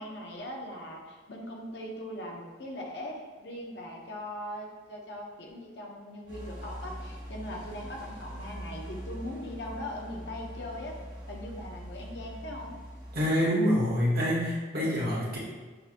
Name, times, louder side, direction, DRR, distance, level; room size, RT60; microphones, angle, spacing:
voice 1, 0.0-11.0 11.3-12.8, left 1 dB, 65° left, 0 dB, 0.7 m, -40 dB
sound 1, 6.3-13.2, equal, 25° right, 1.1 m, -42 dB
voice 2, 13.1-15.4, equal, 55° right, -6 dB, 1.3 m, -26 dB
6.6 x 2.7 x 2.5 m, 1.3 s
head